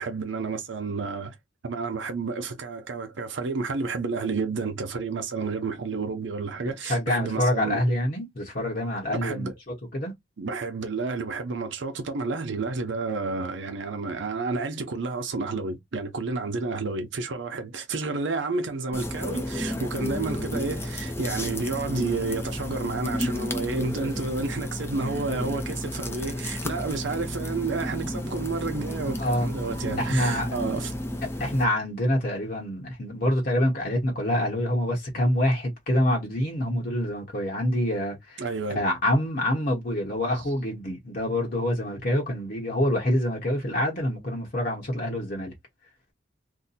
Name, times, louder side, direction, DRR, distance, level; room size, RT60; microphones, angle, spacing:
voice 1, 0.0-1.3 1.6-7.8 9.1-9.5 10.4-30.9 38.4-38.8, right 3 dB, 75° right, 0.6 m, -30 dB
voice 2, 6.6-10.1 29.2-29.5 30.0-30.5 31.4-38.5 38.7-45.5, left 1 dB, 50° left, 1.0 m, -26 dB
sound 1, 18.9-31.6, left 1 dB, 15° left, 0.5 m, -32 dB
2.7 x 2.1 x 4.0 m
head